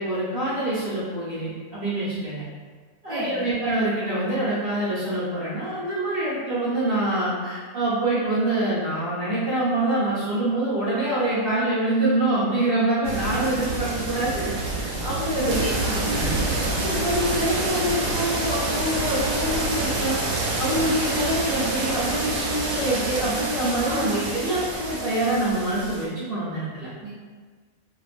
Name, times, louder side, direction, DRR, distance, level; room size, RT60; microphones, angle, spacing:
voice 1, 0.0-2.4 3.0-15.6 16.1-16.3 16.8-20.2 20.6-26.9, right 1 dB, 50° right, -11 dB, 0.9 m, -25 dB
voice 2, 3.1-3.5 15.4-16.2 23.8-24.5 27.0-27.2, right 1 dB, 30° left, -13 dB, 0.9 m, -32 dB
sound 1, 13.0-26.1, right 2 dB, 90° right, 1.0 m, -27 dB
2.5 x 2.3 x 2.4 m, 1.5 s
omnidirectional pair, 1.4 m